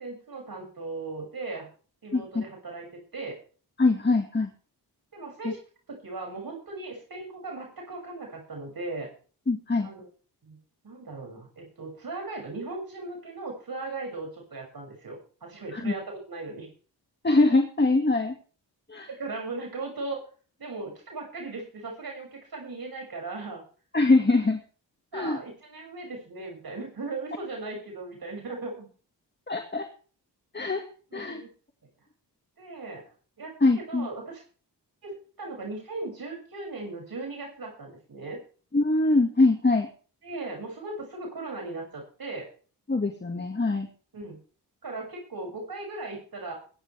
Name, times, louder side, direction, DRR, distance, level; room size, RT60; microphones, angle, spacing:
voice 1, 0.0-1.7 2.0-3.4 5.1-5.6 5.9-9.1 9.8-10.1 10.4-10.6 10.8-16.7 19.1-20.2 20.6-23.6 25.1-28.9 31.1-31.5 32.6-33.0 33.4-34.4 35.0-38.4 40.2-42.5 44.1-44.4 44.8-46.5, right 3 dB, 60° right, 0 dB, 6.9 m, -38 dB
voice 2, 2.1-2.4 3.8-4.5 9.5-9.9 15.7-15.9 17.2-18.3 18.9-19.1 23.9-24.6 25.1-25.4 29.5-29.9 30.5-30.8 31.1-31.4 33.6-34.1 38.7-39.9 42.9-43.9, left 3 dB, 25° left, 4 dB, 2.0 m, -23 dB
21.5 x 11.0 x 3.5 m, 0.40 s
cardioid pair, 70°, 41 cm